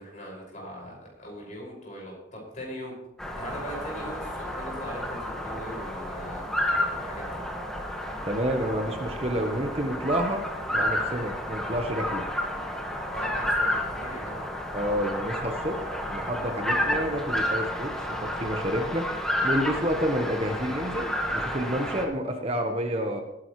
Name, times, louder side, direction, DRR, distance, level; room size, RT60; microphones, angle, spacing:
voice 1, 0.0-2.9 3.4-6.4 6.9-7.4 13.1-14.5, equal, 45° left, -3 dB, 5.9 m, -40 dB
sound 1, 3.2-22.0, equal, 5° left, 1.5 m, -31 dB
voice 2, 8.2-10.4 10.7-12.3 14.7-19.1 19.4-23.2, equal, 35° right, 4 dB, 1.2 m, -29 dB
20.0 x 10.0 x 3.2 m, 0.92 s
head